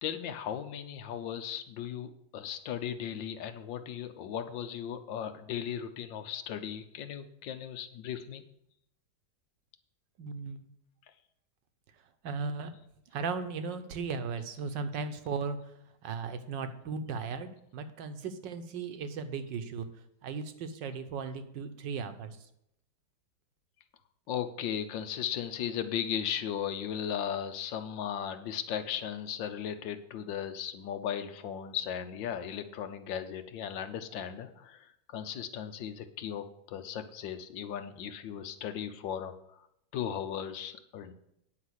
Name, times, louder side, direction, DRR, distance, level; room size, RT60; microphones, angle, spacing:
voice 1, 0.0-8.4 24.3-39.4 39.9-41.1, left 9 dB, 80° left, 9 dB, 1.5 m, -36 dB
voice 2, 10.2-10.7 12.2-12.7 13.1-19.9 20.2-22.4, right 5 dB, 75° right, 9 dB, 1.6 m, -37 dB
9.3 x 5.8 x 8.0 m, 0.77 s
omnidirectional pair, 2.0 m